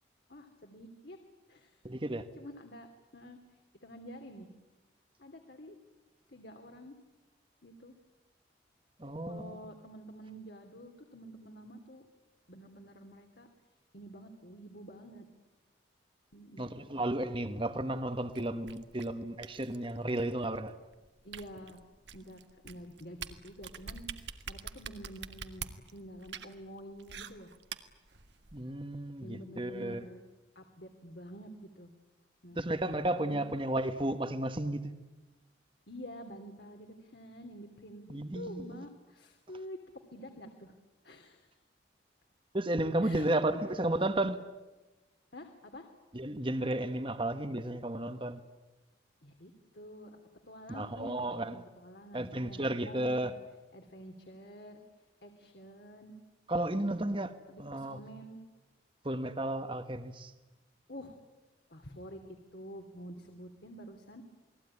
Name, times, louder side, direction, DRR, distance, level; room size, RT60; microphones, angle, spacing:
voice 1, 0.3-1.2 1.5-1.8 2.3-2.9 3.1-3.4 3.7-4.5 5.2-5.8 6.3-6.9 7.6-7.9 9.3-12.0 12.5-13.5 13.9-15.3 16.3-16.7 21.2-21.8 22.1-27.5 29.2-30.2 30.5-31.5 31.7-31.9 32.4-32.7 33.1-33.5 35.9-39.8 40.1-40.7 41.0-41.5 43.0-43.3 45.3-45.9 49.2-50.2 50.5-53.4 53.7-54.8 55.2-56.1 57.5-58.4 60.9-61.2 61.7-62.2 62.5-64.2, equal, 60° left, 2.9 m, -48 dB
voice 2, 1.8-2.2 9.0-9.7 16.6-20.7 28.5-30.0 32.6-34.8 38.1-38.8 42.5-44.4 46.1-48.4 50.7-51.6 52.1-53.3 56.5-57.3 57.6-58.0 59.0-60.3, right 1 dB, 25° right, 1.3 m, -33 dB
sound 1, 18.3-28.6, right 6 dB, 70° right, 1.8 m, -46 dB
29.0 x 21.0 x 9.8 m
head